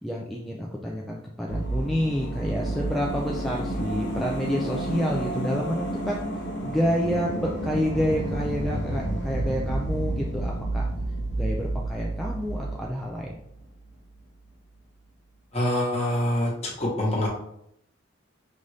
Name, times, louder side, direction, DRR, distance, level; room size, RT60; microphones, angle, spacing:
voice 1, 0.0-6.2 6.6-10.9 11.3-13.4, equal, ahead, -3 dB, 0.3 m, -28 dB
sound 1, 1.5-13.9 14.2-14.3, right 1 dB, 60° left, 0.8 m, -30 dB
voice 2, 15.5-17.3, left 1 dB, 30° left, -4 dB, 1.2 m, -25 dB
5.3 x 2.5 x 3.2 m, 0.76 s
head